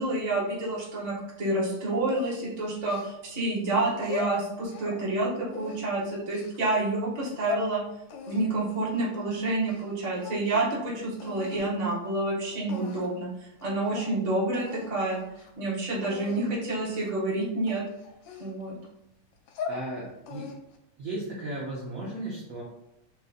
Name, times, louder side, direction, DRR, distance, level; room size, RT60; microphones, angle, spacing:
voice 1, 0.0-7.8 8.3-13.3 13.6-15.2 15.6-17.8 18.4-18.7, right 2 dB, 35° right, -5 dB, 0.7 m, -28 dB
sound 1, 2.1-3.4 3.9-5.0 5.5-6.6 7.1-7.7 8.1-9.9 10.1-10.8 11.2-11.6 12.3-12.4 12.7-13.2 13.6-13.7 14.0-14.1 14.5-14.9 15.3-15.5 16.0-16.4 16.9-17.2 17.7-18.9 19.3-19.8 20.3-20.8, left 5 dB, 75° left, 1.2 m, -39 dB
voice 2, 19.7-20.5 21.0-22.6, right 2 dB, 60° right, -5 dB, 0.9 m, -35 dB
3.3 x 3.0 x 3.8 m, 0.82 s
omnidirectional pair, 2.4 m